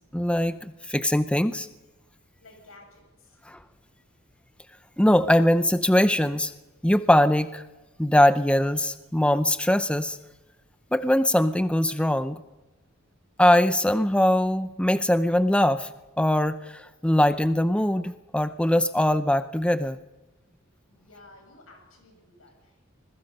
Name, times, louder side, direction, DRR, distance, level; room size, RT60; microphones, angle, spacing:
voice 1, 0.1-1.7 3.5-3.6 5.0-6.5 6.8-7.6 8.0-10.2 10.9-12.4 13.4-15.9 16.2-20.0, left 1 dB, 5° left, 11 dB, 0.6 m, -22 dB
voice 2, 2.4-3.4 20.9-22.8, left 2 dB, 85° left, 3 dB, 7.4 m, -53 dB
26.0 x 21.0 x 5.4 m, 1.1 s
head